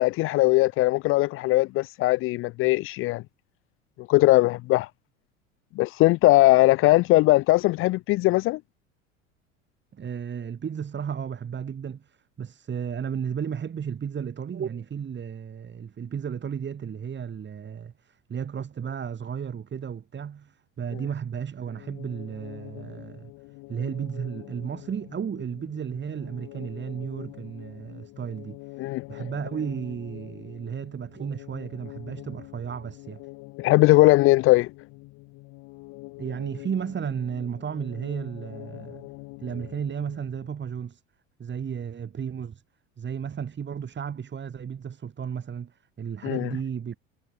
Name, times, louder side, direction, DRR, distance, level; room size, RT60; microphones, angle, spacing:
voice 1, 0.0-3.2 4.1-4.9 5.8-8.6 28.8-29.0 33.6-34.7 46.2-46.5, left 19 dB, 35° left, 0.5 m, -20 dB
voice 2, 9.9-23.3 23.7-28.6 29.1-33.2 36.2-39.0 39.4-41.0 41.4-42.6 43.0-47.0, right 7 dB, 30° right, 6.1 m, -33 dB
sound 1, 21.7-40.5, left 25 dB, 55° left, 5.6 m, -45 dB
figure-of-eight pair, 75°, 37 cm